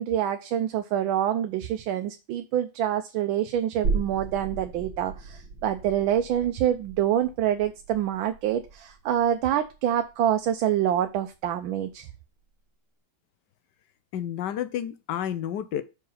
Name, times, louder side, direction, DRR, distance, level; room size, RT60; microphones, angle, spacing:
voice 1, 0.0-12.1, right 10 dB, 90° right, 1.4 m, -26 dB
sound 1, 3.8-11.1 11.5-11.6, right 4 dB, 65° right, 2.4 m, -36 dB
voice 2, 14.1-15.8, left 10 dB, 70° left, 1.2 m, -30 dB
5.9 x 4.8 x 5.6 m
omnidirectional pair, 2.1 m